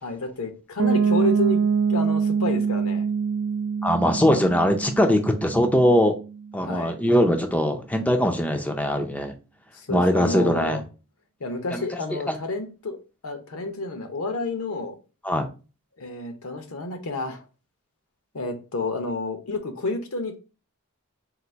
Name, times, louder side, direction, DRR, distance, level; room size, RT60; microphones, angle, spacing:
voice 1, 0.0-1.6 1.9-3.1 6.6-6.9 9.7-10.8 11.4-13.0 13.2-15.0 16.0-17.4 18.3-20.3, left 2 dB, 75° left, 0.8 m, -30 dB
Piano, 0.8-6.5, right 6 dB, 80° right, 0.4 m, -25 dB
voice 2, 3.8-6.1 6.5-9.3 9.9-10.8 11.7-11.8 12.1-12.4 15.2-15.5, equal, 5° left, 0.4 m, -21 dB
3.9 x 2.4 x 4.4 m
head